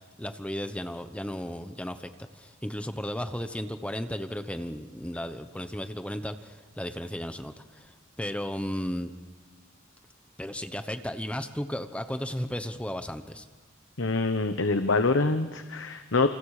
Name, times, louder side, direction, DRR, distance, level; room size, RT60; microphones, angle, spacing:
voice 1, 0.2-9.1 10.4-13.5, equal, 5° left, 9 dB, 1.0 m, -34 dB
voice 2, 14.0-16.3, left 3 dB, 65° left, 8 dB, 1.1 m, -25 dB
29.0 x 27.0 x 5.0 m, 1.4 s
head